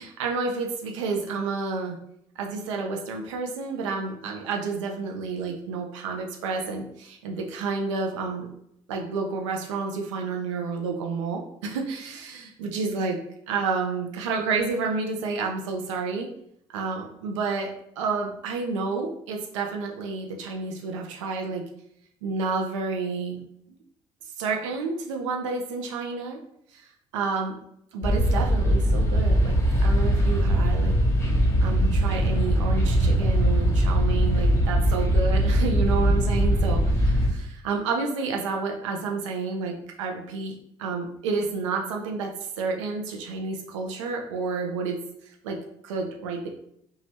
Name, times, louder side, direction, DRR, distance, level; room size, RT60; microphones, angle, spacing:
voice 1, 0.0-2.0 2.4-8.5 8.9-13.2 13.5-16.3 16.7-17.7 18.0-21.6 22.2-23.4 23.7-23.8 24.4-26.4 26.7-26.9 27.1-27.5 27.9-29.6 29.8-31.0 31.6-40.5 40.8-45.0 45.4-46.5, right 4 dB, 75° right, 2 dB, 0.5 m, -30 dB
sound 1, 28.0-37.3, equal, 15° left, 0.9 m, -21 dB
2.8 x 2.3 x 3.2 m, 0.72 s
figure-of-eight pair, 50°, 16 cm